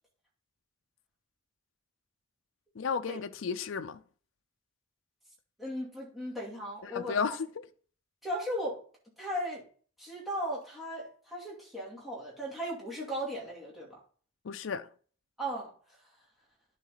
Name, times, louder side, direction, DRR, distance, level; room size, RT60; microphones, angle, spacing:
voice 1, 2.8-4.0 6.8-7.6 14.4-14.9, left 5 dB, 75° left, 0.5 m, -33 dB
voice 2, 5.6-7.2 8.2-8.8 9.2-9.7 10.0-14.0 15.4-15.7, equal, ahead, 2.5 m, -36 dB
11.5 x 4.1 x 3.9 m
head